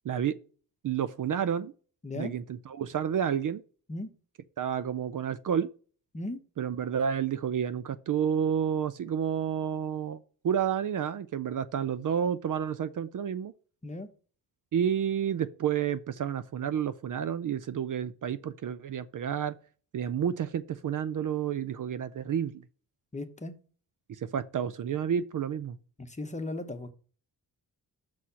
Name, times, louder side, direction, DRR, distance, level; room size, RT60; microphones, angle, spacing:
voice 1, 0.0-0.4 0.8-1.7 2.2-3.6 4.6-5.7 6.6-10.2 10.4-13.5 14.7-19.6 19.9-22.6 24.1-25.8, right 8 dB, 55° right, 0.5 m, -30 dB
voice 2, 23.1-23.5 26.0-26.9, left 2 dB, 20° left, 0.8 m, -36 dB
6.3 x 4.2 x 5.6 m
wide cardioid pair, 125°, 40 cm